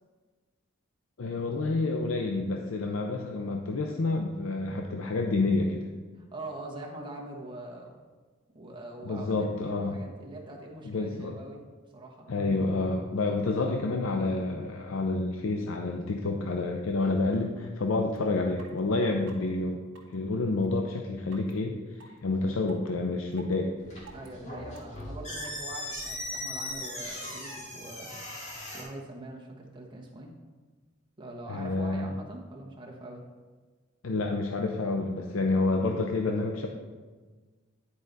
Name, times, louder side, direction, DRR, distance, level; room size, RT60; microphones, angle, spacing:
voice 1, 1.2-5.9 9.0-10.0 10.8-11.4 12.3-19.8 20.1-23.7 31.5-32.1 34.0-36.7, left 3 dB, 85° left, 2 dB, 0.6 m, -29 dB
voice 2, 6.2-8.0 8.5-11.6 11.9-12.3 24.1-28.2 28.7-30.3 31.2-33.2, right 2 dB, 25° right, -1 dB, 1.2 m, -43 dB
sound 1, 18.1-18.2 18.6-18.7 19.3-19.4 19.9-20.1 20.6-20.7 21.3-21.5 22.0-22.1 22.7-22.9 23.3-23.5 24.1-24.3 24.7-25.0 25.4-25.5, right 5 dB, 65° right, 1.3 m, -49 dB
sound 2, 23.8-28.8, left 1 dB, 35° left, 2.0 m, -38 dB
9.8 x 4.8 x 4.0 m, 1.4 s
head